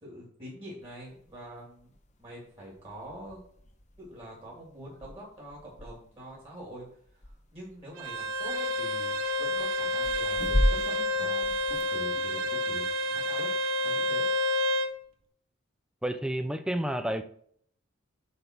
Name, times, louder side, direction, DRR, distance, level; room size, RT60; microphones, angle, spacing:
voice 1, 0.0-1.9 2.2-3.4 4.0-6.9 7.1-13.5 13.8-14.3, equal, 25° right, -4 dB, 2.5 m, -45 dB
sound 1, 0.8-14.1, equal, 35° left, 0.9 m, -36 dB
Bowed string instrument, 8.0-14.9, left 1 dB, 80° right, 1.0 m, -29 dB
voice 2, 16.0-17.2, right 1 dB, 5° right, 9 dB, 0.4 m, -30 dB
7.9 x 3.4 x 5.9 m, 0.63 s
head